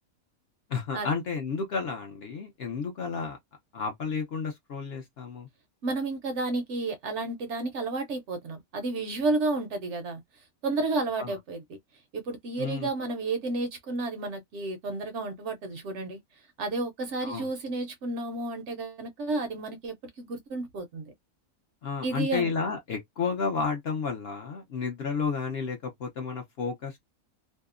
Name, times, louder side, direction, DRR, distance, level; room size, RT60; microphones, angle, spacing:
voice 1, 0.7-3.4 3.7-5.5 11.2-11.4 12.6-12.9 17.2-17.5 21.8-27.0, left 5 dB, 60° left, 0.7 m, -32 dB
voice 2, 5.8-10.2 10.6-11.6 12.1-16.2 16.6-21.1 22.0-22.5, right 2 dB, 65° right, 0.8 m, -31 dB
2.7 x 2.0 x 2.4 m
omnidirectional pair, 1.5 m